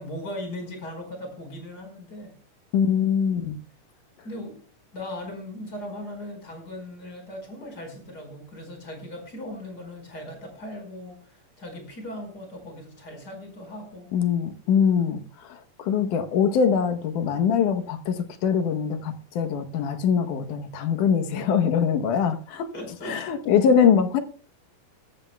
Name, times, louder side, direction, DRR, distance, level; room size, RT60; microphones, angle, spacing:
voice 1, 0.0-2.3 2.9-3.1 4.2-4.6 4.9-14.1 22.7-23.2, left 1 dB, 30° left, 4 dB, 5.4 m, -38 dB
voice 2, 2.7-3.6 14.1-22.7 23.0-24.2, left 7 dB, 75° left, 8 dB, 2.5 m, -23 dB
20.5 x 14.5 x 2.3 m, 0.40 s
omnidirectional pair, 3.8 m